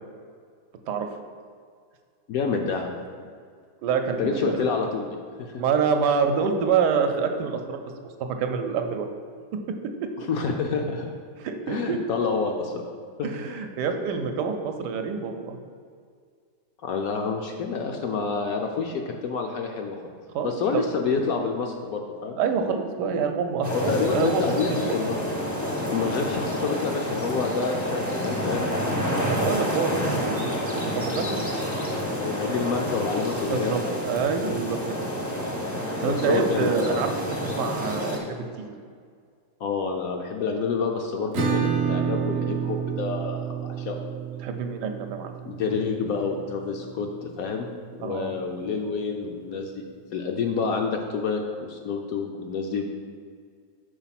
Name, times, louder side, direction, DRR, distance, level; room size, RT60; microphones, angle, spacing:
voice 1, 2.3-3.0 4.2-5.6 10.2-11.1 11.7-12.8 13.2-13.3 16.8-20.0 20.4-22.4 23.7-25.2 25.9-29.3 32.2-34.2 36.0-37.0 39.6-44.0 45.4-47.7 48.0-49.8 50.1-52.8, left 5 dB, 70° left, 3 dB, 0.9 m, -28 dB
voice 2, 3.8-4.6 5.5-7.8 8.2-9.1 11.4-12.0 13.2-15.6 20.3-20.8 22.4-24.9 29.2-30.6 30.9-31.4 33.5-35.1 36.0-38.7 44.4-45.3 48.0-48.4, right 6 dB, 80° right, 5 dB, 1.2 m, -27 dB
sound 1, 23.6-38.2, equal, 20° left, 0.5 m, -29 dB
Acoustic guitar / Strum, 41.3-46.8, right 7 dB, 65° right, 0.6 m, -29 dB
5.6 x 4.1 x 5.8 m, 2.1 s
omnidirectional pair, 1.9 m